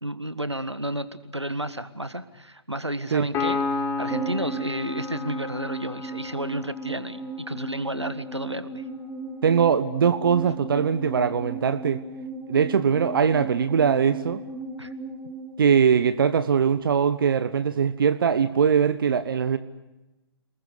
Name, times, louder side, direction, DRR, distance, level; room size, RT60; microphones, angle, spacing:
voice 1, 0.0-8.8 14.8-14.9, right 1 dB, 90° right, 11 dB, 1.7 m, -32 dB
Piano, 3.3-6.9, left 4 dB, 15° left, 3.4 m, -31 dB
sound 1, 4.1-16.6 16.9-17.0, right 2 dB, 10° right, 3.2 m, -37 dB
voice 2, 9.4-12.0 12.5-14.4 15.6-19.6, right 7 dB, 55° right, 12 dB, 1.2 m, -21 dB
29.5 x 21.0 x 6.6 m, 1.0 s
figure-of-eight pair, 125°, 14 cm